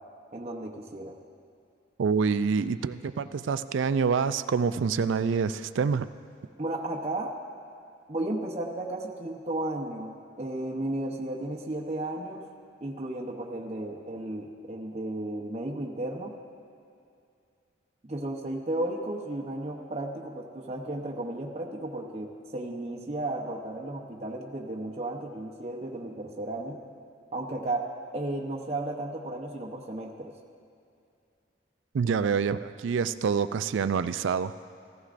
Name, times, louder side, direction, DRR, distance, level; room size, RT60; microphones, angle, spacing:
voice 1, 0.3-1.2 6.6-7.3 8.1-12.4 12.8-16.3 18.0-26.8 27.3-27.9 28.1-30.3, right 1 dB, 30° right, -2 dB, 0.8 m, -34 dB
voice 2, 2.0-6.1 31.9-34.5, right 5 dB, 75° right, 13 dB, 0.3 m, -26 dB
15.5 x 14.5 x 2.5 m, 2.4 s
head